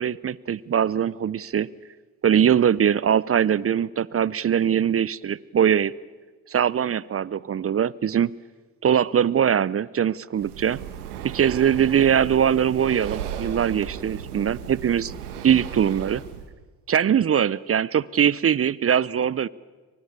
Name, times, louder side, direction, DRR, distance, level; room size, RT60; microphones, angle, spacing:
voice 1, 0.0-1.7 2.2-5.9 6.5-8.3 8.8-10.8 11.2-15.2 15.4-16.2 16.9-19.5, right 8 dB, 30° right, 23 dB, 0.7 m, -22 dB
Breathing, 10.3-16.5, right 9 dB, 85° right, 1.7 m, -35 dB
28.0 x 24.0 x 6.8 m, 1.4 s
hypercardioid pair, 50°, 44 cm